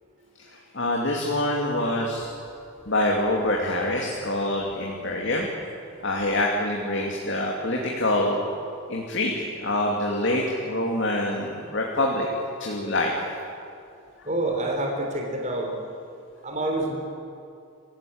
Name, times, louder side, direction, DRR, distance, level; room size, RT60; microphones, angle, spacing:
voice 1, 0.5-2.3 2.9-5.5 6.0-8.4 8.9-12.3 12.6-13.2 14.2-14.3, left 1 dB, 60° left, -1 dB, 2.7 m, -25 dB
voice 2, 14.3-15.7 16.4-16.9, right 1 dB, 35° right, 1 dB, 3.7 m, -27 dB
26.5 x 16.5 x 8.8 m, 2.4 s
head